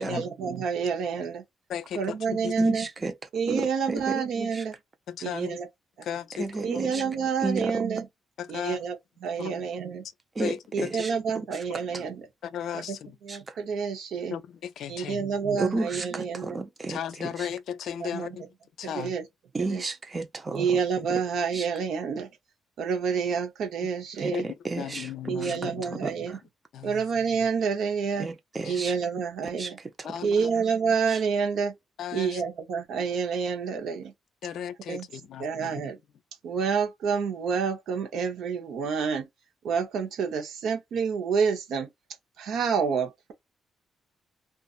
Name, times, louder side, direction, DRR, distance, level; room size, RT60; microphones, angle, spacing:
voice 1, 0.0-1.4 2.0-2.9 3.3-4.7 5.2-5.7 6.6-8.1 8.5-9.0 9.2-10.0 10.7-12.3 12.7-13.0 13.2-14.4 14.9-16.6 18.0-18.3 18.8-19.2 19.6-19.8 20.5-22.3 22.8-24.4 25.3-26.4 26.8-28.3 28.6-29.8 30.2-31.7 32.1-34.1 34.9-35.1 35.4-36.0 36.4-39.3 39.6-41.9 42.4-43.3, right 6 dB, 75° right, 0.8 m, -28 dB
voice 2, 1.7-2.7 5.1-5.6 6.0-6.7 8.4-8.8 9.4-9.6 10.4-11.0 12.4-13.2 14.3-15.2 16.9-18.4 18.8-19.1 24.3-24.4 24.8-26.3 26.7-27.0 28.6-28.8 30.0-30.5 32.0-32.4 34.4-35.8, left 9 dB, 70° left, 0.4 m, -36 dB
voice 3, 2.6-3.1 3.5-4.6 6.4-7.0 7.4-7.8 10.4-11.1 11.9-12.0 13.3-13.5 15.6-17.5 19.5-20.8 21.1-21.2 21.5-21.7 24.2-25.1 25.4-25.7 26.0-26.1 28.2-28.9 29.6-29.7 30.0-30.1 31.1-31.2, right 3 dB, 35° right, 0.7 m, -32 dB
2.5 x 2.4 x 2.4 m
hypercardioid pair, 50°, 0 cm